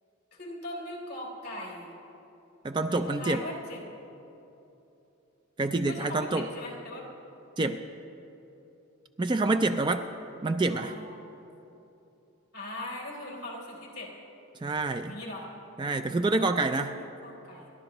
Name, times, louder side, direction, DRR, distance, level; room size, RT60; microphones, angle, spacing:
voice 1, 0.3-1.9 2.9-3.8 5.8-7.1 10.7-11.1 12.5-14.1 15.1-15.5 16.8-17.7, left 1 dB, 50° left, -4 dB, 3.4 m, -40 dB
voice 2, 2.6-3.5 5.6-6.5 7.6-7.8 9.2-10.1 10.4-11.0 14.6-15.2 15.8-17.0, right 2 dB, 20° right, 8 dB, 0.3 m, -27 dB
28.5 x 12.0 x 3.0 m, 2.9 s
head